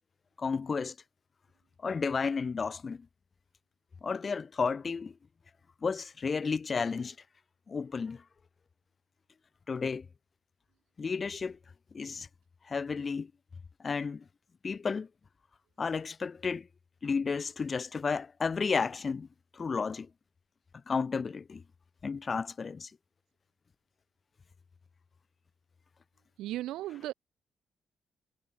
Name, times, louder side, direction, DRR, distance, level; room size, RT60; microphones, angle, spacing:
voice 1, 0.4-0.9 1.8-3.1 4.0-5.1 5.8-7.1 7.7-8.2 9.7-10.1 11.0-11.6 11.9-12.3 12.7-13.3 13.8-14.2 14.6-15.1 15.8-16.7 17.0-19.3 19.5-20.1 20.9-21.6 22.0-22.9, left 5 dB, 35° left, 6.7 m, -32 dB
voice 2, 26.4-27.1, right 15 dB, 90° right, 5.5 m, -36 dB
cardioid pair, 90°, 0 cm